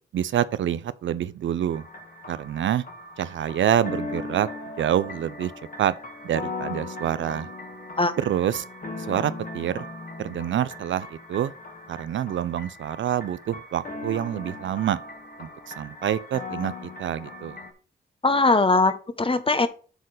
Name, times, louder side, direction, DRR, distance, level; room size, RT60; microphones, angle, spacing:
voice 1, 0.1-1.9 2.3-2.8 3.2-4.5 4.8-5.5 5.8-5.9 6.2-7.5 8.2-8.6 9.1-9.8 10.2-11.5 11.9-15.0 15.4-16.7 17.0-17.6, right 10 dB, 65° right, 0.6 m, -26 dB
sound 1, 1.7-17.7, left 2 dB, 45° left, 2.0 m, -38 dB
voice 2, 18.2-19.7, left 3 dB, 25° left, 1.2 m, -20 dB
8.0 x 4.3 x 5.0 m
supercardioid pair, 55°, 21 cm